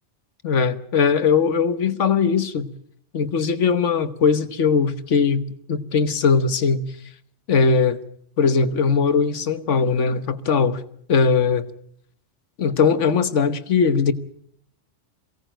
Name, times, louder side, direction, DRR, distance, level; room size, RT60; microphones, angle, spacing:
voice 1, 0.4-2.7 3.1-6.8 7.5-8.0 8.4-10.8 11.1-11.7 12.6-14.1, left 5 dB, 80° left, 12 dB, 1.5 m, -20 dB
23.0 x 17.0 x 9.0 m, 0.68 s
omnidirectional pair, 1.2 m